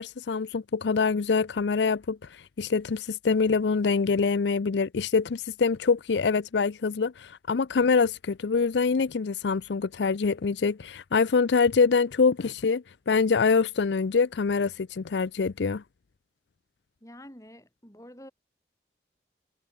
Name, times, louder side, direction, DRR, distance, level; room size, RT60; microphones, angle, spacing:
voice 1, 0.0-15.8, left 5 dB, 85° left, 0.5 m, -25 dB
voice 2, 17.0-18.3, left 1 dB, 20° left, 4.1 m, -47 dB
head